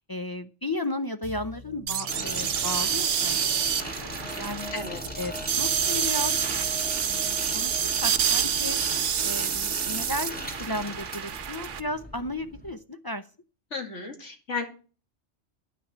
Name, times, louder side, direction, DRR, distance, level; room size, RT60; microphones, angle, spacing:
voice 1, 0.0-3.4 3.7-4.7 5.2-5.3 5.6-6.4 7.0-8.8 9.2-13.3, left 1 dB, 30° left, 8 dB, 0.4 m, -34 dB
sound 1, 1.2-9.9, left 1 dB, 25° right, 1.7 m, -45 dB
sound 2, 1.9-11.8, right 8 dB, 80° right, 1.2 m, -28 dB
sound 3, 2.1-12.7, equal, 5° left, 2.3 m, -38 dB
voice 2, 13.7-14.6, left 4 dB, 70° left, 3 dB, 2.7 m, -33 dB
10.5 x 6.0 x 7.2 m, 0.36 s
omnidirectional pair, 1.3 m